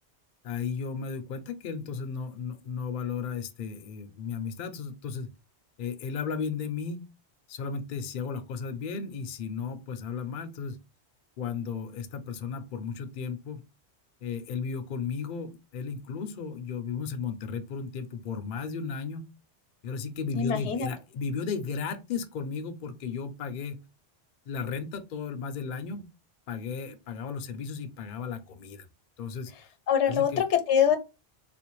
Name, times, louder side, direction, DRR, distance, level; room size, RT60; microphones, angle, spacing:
voice 1, 0.4-5.3 5.8-7.0 7.5-10.8 11.4-13.6 14.2-19.2 19.8-23.8 24.5-26.1 26.5-28.9 29.2-29.5 30.1-30.4, left 5 dB, 55° left, 0.6 m, -34 dB
voice 2, 20.4-20.9 29.9-31.0, left 8 dB, 85° left, 0.9 m, -24 dB
3.7 x 2.5 x 3.0 m
omnidirectional pair, 1.1 m